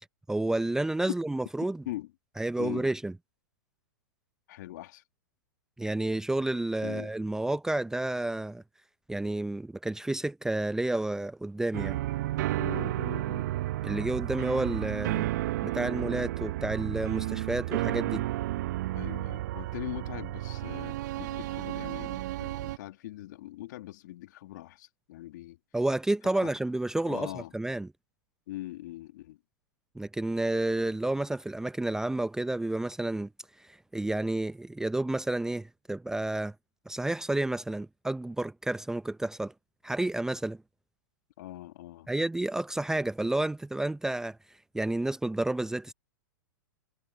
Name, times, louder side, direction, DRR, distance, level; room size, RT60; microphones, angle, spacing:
voice 1, 0.3-1.8 2.4-3.1 5.8-8.6 9.1-12.0 13.8-15.3 15.6-18.2 25.7-27.9 30.0-33.3 33.6-36.5 36.9-39.5 39.8-40.6 42.1-44.4 44.7-45.9, right 2 dB, 5° right, 0.7 m, -30 dB
voice 2, 4.5-5.0 6.8-7.1 12.6-13.5 18.9-25.6 26.4-26.5 27.0-27.5 28.5-29.4 41.4-42.1, left 16 dB, 60° left, 2.7 m, -41 dB
sound 1, 11.7-22.8, right 16 dB, 55° right, 0.9 m, -32 dB
hypercardioid pair, 110°, 11 cm